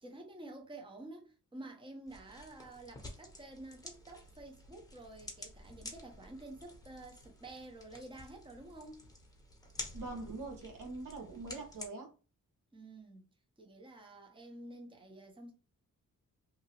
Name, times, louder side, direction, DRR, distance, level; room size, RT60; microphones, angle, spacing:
voice 1, 0.0-9.1 12.7-13.3 13.6-15.5, right 2 dB, 15° right, 0.7 m, -50 dB
sound 1, 2.1-11.9, left 2 dB, 10° left, 1.0 m, -50 dB
voice 2, 9.9-12.1, right 3 dB, 75° right, 0.9 m, -43 dB
2.8 x 2.6 x 2.9 m
cardioid pair, 95°, 33 cm